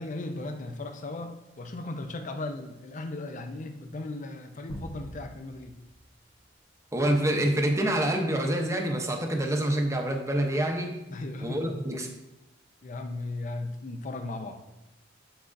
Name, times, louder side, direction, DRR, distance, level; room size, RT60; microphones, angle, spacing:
voice 1, 0.0-5.8 11.1-11.8 12.8-14.6, left 2 dB, 40° left, 6 dB, 0.5 m, -37 dB
sound 1, 4.7-7.3, equal, 80° left, 1.3 m, -45 dB
voice 2, 6.9-11.0 11.4-12.1, right 1 dB, 15° right, 3 dB, 0.7 m, -26 dB
8.1 x 6.0 x 2.6 m, 0.95 s
head